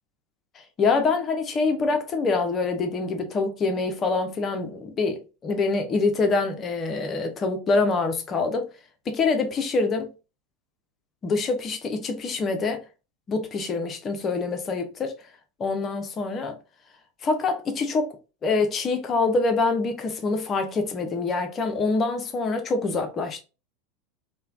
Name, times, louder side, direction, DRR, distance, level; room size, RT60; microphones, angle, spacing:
voice 1, 0.8-8.7 9.1-10.1 11.2-12.8 13.3-15.2 15.6-16.6 17.2-18.2 18.4-23.4, left 3 dB, 30° left, 0.6 m, -25 dB
3.2 x 2.2 x 2.4 m
figure-of-eight pair, 85°, 0 cm